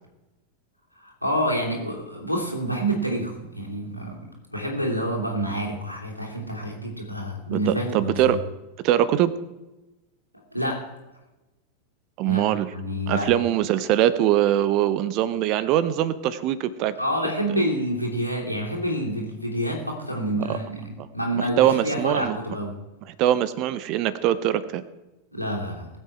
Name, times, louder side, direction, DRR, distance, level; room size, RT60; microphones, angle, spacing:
voice 1, 1.0-4.2 4.5-8.4 10.5-10.9 12.2-12.4 12.7-13.4 17.0-22.8 25.3-25.9, equal, 90° left, -2 dB, 3.1 m, -28 dB
voice 2, 7.5-8.4 8.8-9.3 12.2-12.7 13.1-16.9 17.5-17.6 20.5-20.6 21.4-22.4 23.1-24.8, right 12 dB, 40° right, 16 dB, 0.7 m, -22 dB
20.0 x 7.8 x 4.5 m, 1.1 s
figure-of-eight pair, 90°, 0 cm